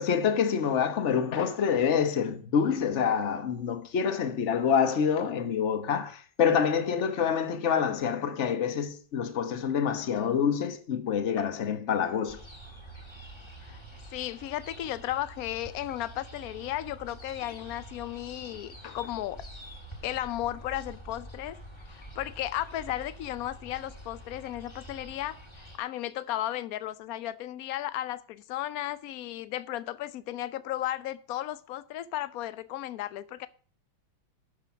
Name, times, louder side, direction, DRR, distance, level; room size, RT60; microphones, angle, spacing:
voice 1, 0.0-12.4 18.8-18.9, left 7 dB, 40° left, 1.2 m, -27 dB
sound 1, 12.3-25.8, right 1 dB, 15° left, 1.5 m, -47 dB
voice 2, 14.1-19.4 20.0-21.6 21.9-33.5, left 13 dB, 90° left, 0.7 m, -35 dB
11.5 x 5.7 x 6.0 m
omnidirectional pair, 2.3 m